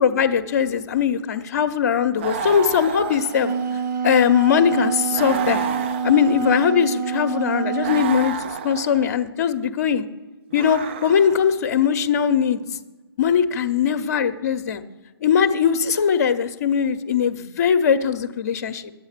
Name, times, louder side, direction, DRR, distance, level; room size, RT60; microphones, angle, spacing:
voice 1, 0.0-3.5 4.0-5.6 6.0-8.3 8.6-10.1 10.5-12.6 13.2-14.8 15.2-18.9, left 7 dB, 40° left, 11 dB, 0.7 m, -20 dB
sound 1, 2.2-3.9 5.1-6.7 7.8-9.2 10.5-11.6, right 6 dB, 30° right, 0.4 m, -31 dB
Wind instrument woodwind instrument, 3.2-8.4, right 6 dB, 45° right, 1.2 m, -26 dB
10.5 x 8.1 x 6.6 m, 1.2 s
figure-of-eight pair, 145°, 13 cm